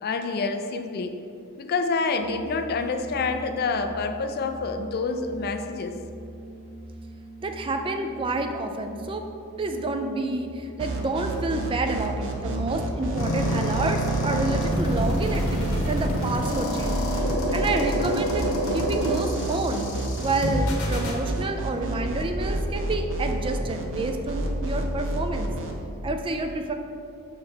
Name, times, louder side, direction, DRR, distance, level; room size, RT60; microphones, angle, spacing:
voice 1, 0.0-1.2 1.6-6.0, left 4 dB, 45° left, 7 dB, 0.4 m, -27 dB
sound 1, 2.2-13.3, right 1 dB, 5° right, 1.1 m, -43 dB
voice 2, 7.4-9.3 9.6-17.2 17.5-19.9 20.2-25.5 26.0-26.7, right 2 dB, 25° right, 5 dB, 0.3 m, -29 dB
sound 2, 10.8-25.7, right 2 dB, 60° right, 0.7 m, -30 dB
sound 3, 13.2-21.2, equal, 80° left, 1.1 m, -27 dB
6.3 x 3.7 x 4.5 m, 2.5 s
head